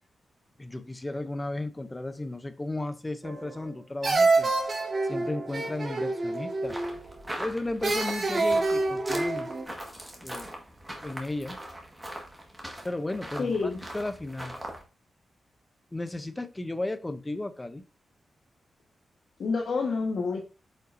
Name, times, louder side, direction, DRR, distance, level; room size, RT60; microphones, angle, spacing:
voice 1, 0.6-4.5 5.1-6.8 7.4-9.5 10.2-10.5 11.0-11.6 12.8-13.5 13.9-14.6 15.9-17.8, left 2 dB, 15° left, 10 dB, 0.6 m, -34 dB
sound 1, 3.2-3.7 4.0-7.1 7.8-9.6, right 3 dB, 35° right, 1.8 m, -27 dB
sound 2, 6.6-14.8, right 1 dB, 10° right, 1.6 m, -41 dB
voice 2, 13.4-13.9 19.4-20.4, left 4 dB, 65° left, 0 dB, 1.3 m, -28 dB
8.7 x 5.5 x 2.6 m, 0.34 s
wide cardioid pair, 155°, 0 cm